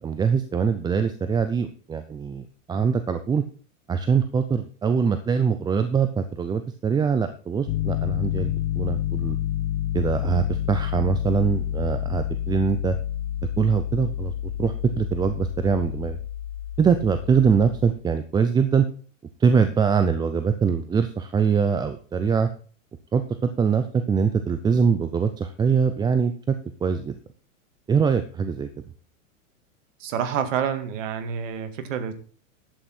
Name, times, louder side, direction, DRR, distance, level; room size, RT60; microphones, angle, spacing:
voice 1, 0.0-3.4 3.9-9.4 9.9-13.0 13.6-14.3 14.6-16.2 16.8-18.9 19.4-22.5 23.1-26.5 26.8-27.1 27.9-28.7, right 6 dB, 10° right, 10 dB, 0.5 m, -23 dB
Piano, 7.7-17.9, left 11 dB, 55° left, 1.0 m, -29 dB
voice 2, 30.0-32.1, right 8 dB, 65° right, 9 dB, 2.1 m, -28 dB
11.5 x 8.4 x 4.4 m, 0.40 s
hypercardioid pair, 130°, 40 cm